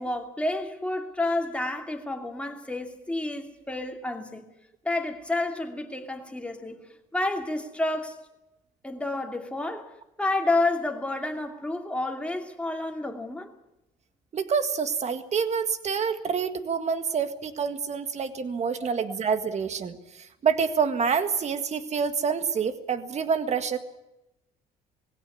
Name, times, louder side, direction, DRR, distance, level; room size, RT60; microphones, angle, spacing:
voice 1, 0.0-4.5 4.8-6.8 7.1-8.2 8.8-9.9 10.2-13.5 16.9-17.0 18.8-18.9 19.5-19.6, left 2 dB, 5° left, 2.6 m, -30 dB
voice 2, 14.3-20.0 20.4-23.8, right 6 dB, 40° right, 1.8 m, -27 dB
19.5 x 16.5 x 9.6 m
cardioid pair, 110°, 17 cm